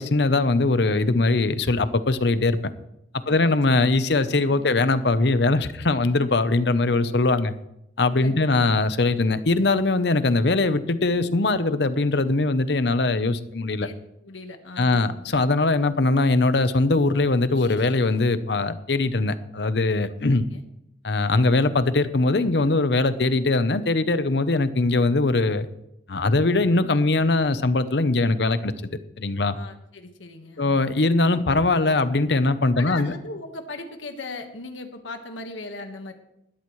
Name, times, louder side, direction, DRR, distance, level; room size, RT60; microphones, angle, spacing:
voice 1, 0.0-2.7 3.3-7.5 8.0-13.9 14.8-20.4 21.0-25.7 26.1-28.7 29.2-29.6 30.6-33.1, left 2 dB, 60° left, 12 dB, 0.8 m, -21 dB
voice 2, 3.3-3.8 4.5-4.9 8.2-8.6 13.8-14.0 14.2-15.2 20.5-20.6 29.5-30.8 32.7-36.1, left 2 dB, 90° left, 5 dB, 1.5 m, -38 dB
19.5 x 13.0 x 3.2 m, 0.83 s
head